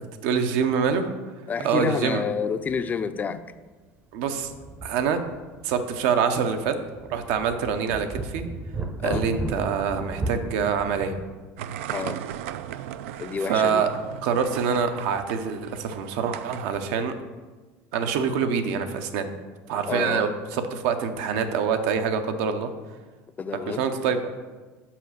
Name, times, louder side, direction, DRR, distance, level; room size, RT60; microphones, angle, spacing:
voice 1, 0.2-1.1 1.6-2.2 4.1-4.5 4.8-5.2 5.6-6.7 7.1-8.4 9.0-11.1 13.5-13.9 14.2-17.1 17.9-19.3 19.7-22.7 23.7-24.2, right 6 dB, 75° right, 8 dB, 0.8 m, -25 dB
voice 2, 1.5-3.4 9.0-9.3 11.9-12.2 13.2-13.8 19.9-20.3 23.4-23.8, left 6 dB, 25° left, 12 dB, 0.4 m, -29 dB
sound 1, 2.7-2.8 3.2-3.3 4.2-5.6 6.0-6.1 6.6-11.4, right 2 dB, 20° right, 0.6 m, -35 dB
sound 2, 11.6-16.9, right 11 dB, 90° right, 0.4 m, -37 dB
5.8 x 4.9 x 6.5 m, 1.3 s
supercardioid pair, 120°, 7 cm